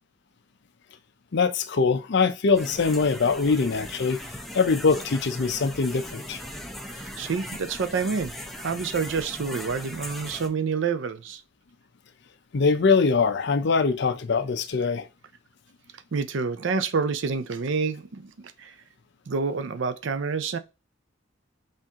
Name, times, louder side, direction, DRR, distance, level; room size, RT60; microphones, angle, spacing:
voice 1, 1.3-4.2 4.5-6.4 12.5-15.1, left 4 dB, 60° left, 0.5 m, -23 dB
sound 1, 2.5-10.5, left 1 dB, ahead, 0.6 m, -39 dB
voice 2, 6.9-11.4 15.9-18.7 19.3-20.6, right 5 dB, 65° right, 0.5 m, -28 dB
4.3 x 2.6 x 3.6 m
head